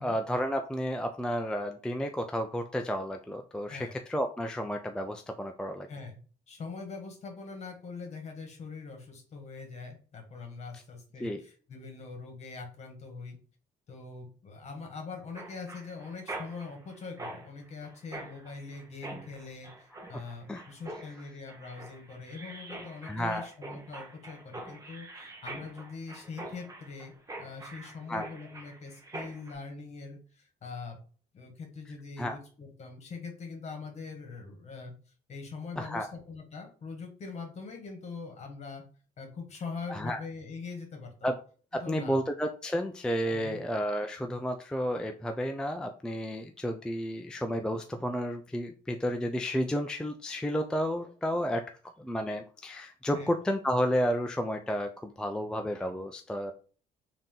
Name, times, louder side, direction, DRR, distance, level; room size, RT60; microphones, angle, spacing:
voice 1, 0.0-5.9 10.7-10.8 11.2-11.4 20.1-20.2 20.5-20.6 23.0-23.5 28.1-28.3 32.2-32.4 35.8-36.1 39.9-40.2 41.2-41.4 41.7-51.6 52.0-56.5, equal, 5° left, 5 dB, 0.3 m, -31 dB
voice 2, 3.7-4.0 5.9-6.2 6.5-13.4 13.9-27.1 27.4-31.0 31.3-34.9 35.3-38.8 39.2-41.1 41.7-42.2 43.3-43.6 53.1-53.3, left 4 dB, 40° left, 3 dB, 1.5 m, -43 dB
Mechanisms, 15.4-29.6, right 2 dB, 20° right, 0.9 m, -45 dB
3.8 x 2.8 x 3.7 m, 0.39 s
cardioid pair, 110°, 17 cm